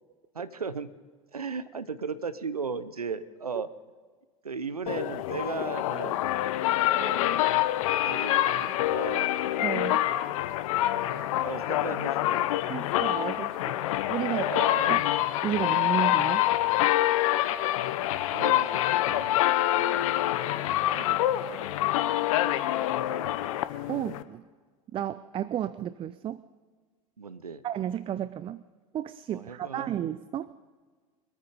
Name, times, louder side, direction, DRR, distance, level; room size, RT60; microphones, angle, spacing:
voice 1, 0.3-0.9 1.3-3.7 4.4-6.2 6.9-7.4 7.9-9.3 10.2-10.4 10.7-12.5 14.2-14.9 18.3-20.6 20.9-21.2 21.4-21.8 27.2-27.6 29.3-29.9, right 5 dB, 90° right, 15 dB, 0.7 m, -37 dB
sound 1, 4.9-24.2, left 14 dB, 65° left, 0.8 m, -26 dB
voice 2, 9.6-10.0 12.7-13.8 14.1-14.5 14.9-15.0 15.4-16.5 23.9-24.4 24.9-26.4 27.6-28.6 28.9-30.5, right 10 dB, 30° right, 16 dB, 0.5 m, -32 dB
24.5 x 8.9 x 5.2 m, 1.5 s
figure-of-eight pair, 75°, 19 cm